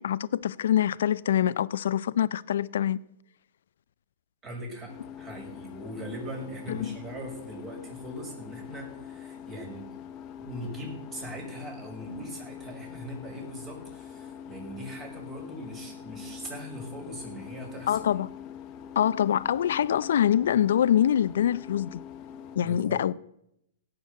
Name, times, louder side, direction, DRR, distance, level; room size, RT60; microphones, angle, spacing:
voice 1, 0.0-3.0 6.7-7.0 17.9-18.3 19.0-22.0 22.6-23.1, left 10 dB, 70° left, 0.5 m, -25 dB
voice 2, 4.4-10.0 10.4-18.0 22.6-23.0, equal, 25° right, 6.1 m, -40 dB
sound 1, 4.9-22.6, left 8 dB, 35° left, 1.3 m, -44 dB
17.0 x 6.9 x 8.1 m
hypercardioid pair, 120°, 0 cm